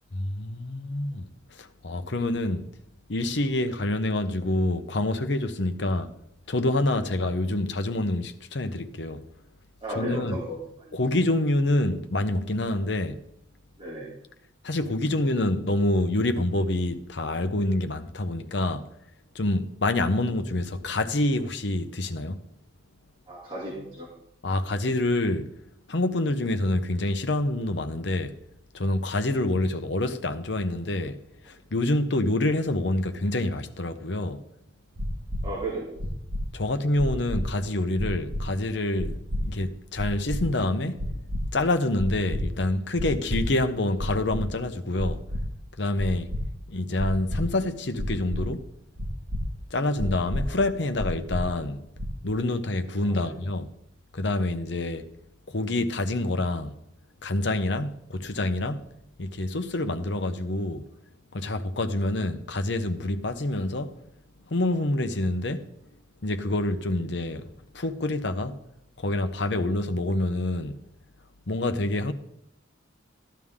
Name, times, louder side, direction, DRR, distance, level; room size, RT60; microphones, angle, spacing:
voice 1, 0.1-2.7 3.1-6.1 6.5-9.2 9.9-10.4 10.9-13.2 14.6-18.9 19.3-22.4 24.4-25.5 25.9-28.3 28.7-31.2 31.4-34.4 36.5-39.2 39.4-41.2 41.5-45.2 45.8-46.3 46.7-48.7 49.7-51.8 52.2-53.7 54.1-55.1 55.5-56.7 57.2-58.8 59.2-60.8 61.3-63.9 64.5-65.7 66.2-68.6 69.0-70.8 71.5-72.1, left 1 dB, 65° left, 0.9 m, -27 dB
voice 2, 9.8-10.9 13.8-14.1 23.3-24.1 35.4-35.9 53.0-53.3, right 1 dB, 25° right, 2.6 m, -34 dB
sound 1, 35.0-35.4 36.0-36.4 37.0-37.4 38.0-38.4 39.0-39.4 40.0-40.4 41.0-41.4 42.0-42.4 43.0-43.4 44.0-44.4 45.0-45.4 46.0-46.4 47.0-47.4 48.0-48.4 49.0-49.4 50.0-50.4 51.0-51.4 52.0-52.3, equal, 85° right, 1.7 m, -30 dB
14.0 x 11.5 x 3.7 m
head